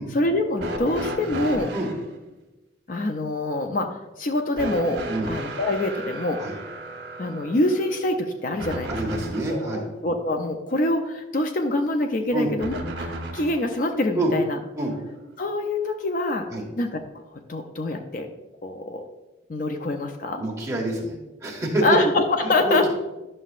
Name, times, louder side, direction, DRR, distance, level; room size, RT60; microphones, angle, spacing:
voice 1, 0.1-1.7 2.9-6.4 7.2-8.9 9.5-14.6 15.4-16.5 16.8-17.2 17.5-18.3 18.6-19.1 19.5-20.4 21.8-22.9, left 2 dB, 45° left, 5 dB, 0.5 m, -25 dB
sound 1, 0.6-2.0 4.6-9.7 12.6-13.7 14.9-15.0 16.0-16.1, right 1 dB, 65° right, 1.2 m, -34 dB
voice 2, 8.9-9.8 12.3-12.5 14.1-14.3 14.8-14.9 16.5-16.6 20.4-21.8 22.4-22.9, right 1 dB, 15° right, -2 dB, 1.5 m, -27 dB
11.0 x 6.4 x 2.4 m, 1.1 s
head